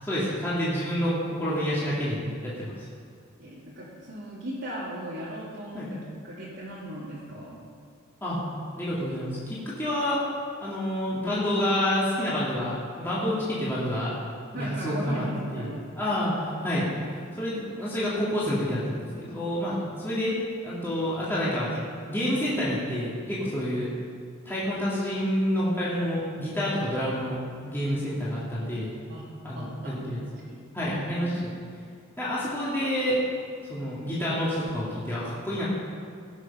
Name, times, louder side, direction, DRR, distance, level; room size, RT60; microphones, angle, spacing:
voice 1, 0.0-1.1 1.4-2.7 5.7-5.9 8.2-8.4 8.8-10.2 10.6-14.1 14.5-15.2 15.5-16.9 17.4-20.4 20.6-21.7 22.0-23.9 24.5-28.9 29.4-30.2 30.7-31.3 32.2-33.2 33.7-35.6, equal, 10° left, -9 dB, 2.3 m, -28 dB
voice 2, 3.4-7.6 14.5-15.8 29.1-29.3 29.6-30.0 30.2-30.6 30.9-31.3, right 1 dB, 65° right, -9 dB, 2.2 m, -37 dB
18.5 x 6.5 x 5.6 m, 2.2 s
head